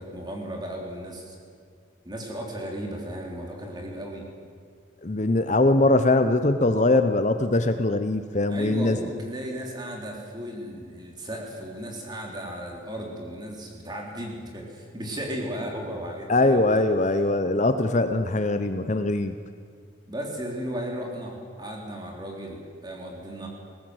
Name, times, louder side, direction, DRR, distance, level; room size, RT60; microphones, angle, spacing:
voice 1, 0.0-1.3 2.0-4.2 8.5-16.8 20.0-23.5, equal, 20° right, 0 dB, 3.4 m, -35 dB
voice 2, 5.0-9.0 16.3-19.4, left 2 dB, 35° left, 9 dB, 0.7 m, -22 dB
21.0 x 18.0 x 7.9 m, 2.2 s
head